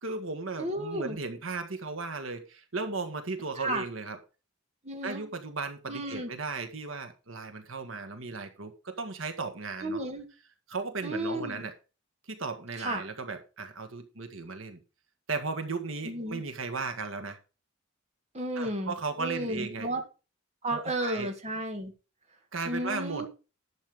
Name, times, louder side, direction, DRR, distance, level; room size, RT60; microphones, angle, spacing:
voice 1, 0.0-4.2 5.0-10.0 10.7-11.7 12.3-14.8 15.3-17.4 18.5-19.9 20.7-21.3 22.5-23.3, right 4 dB, 80° right, 1.6 m, -36 dB
voice 2, 0.6-1.2 3.6-3.8 4.8-5.2 5.9-6.3 9.8-10.3 11.0-11.6 12.8-13.0 16.0-16.4 18.3-20.0 20.6-21.9 22.7-23.3, right 1 dB, 35° right, 2.3 m, -33 dB
11.5 x 7.7 x 5.0 m
head